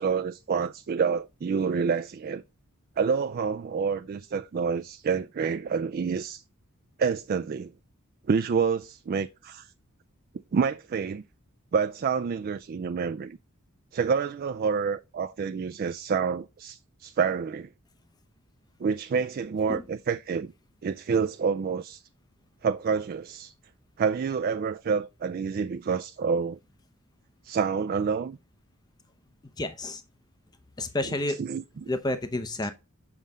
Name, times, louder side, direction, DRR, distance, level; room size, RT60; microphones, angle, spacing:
voice 1, 0.0-2.4 3.0-6.4 7.0-7.7 8.3-9.7 10.5-11.2 11.7-13.4 13.9-17.7 18.8-20.5 20.8-22.0 22.6-23.5 24.0-26.6 27.4-28.4 31.0-31.9, right 6 dB, 40° right, 0.3 m, -28 dB
voice 2, 29.6-30.0 30.8-31.4 31.9-32.7, left 2 dB, 20° left, 0.6 m, -30 dB
7.3 x 5.3 x 3.6 m
head